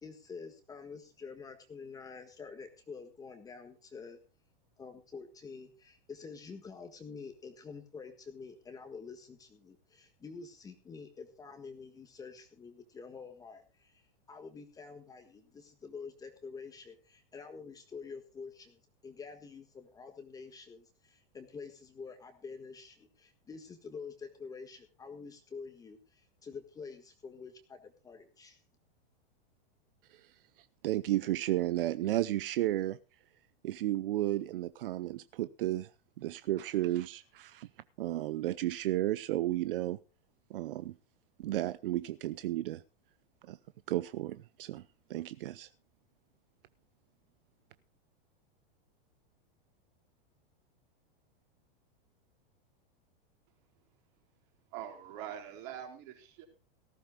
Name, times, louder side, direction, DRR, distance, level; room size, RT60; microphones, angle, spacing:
voice 1, 0.0-4.2 4.8-28.6, left 5 dB, 10° left, 7 dB, 1.5 m, -48 dB
voice 2, 30.1-33.0 33.6-37.7 38.0-40.0 40.5-41.0 41.4-42.8 43.4-43.6 43.9-45.7, right 14 dB, 65° right, 15 dB, 0.8 m, -33 dB
voice 3, 54.7-56.5, right 10 dB, 40° right, 4 dB, 4.1 m, -44 dB
18.5 x 15.0 x 2.3 m, 0.31 s
supercardioid pair, 165°, 29 cm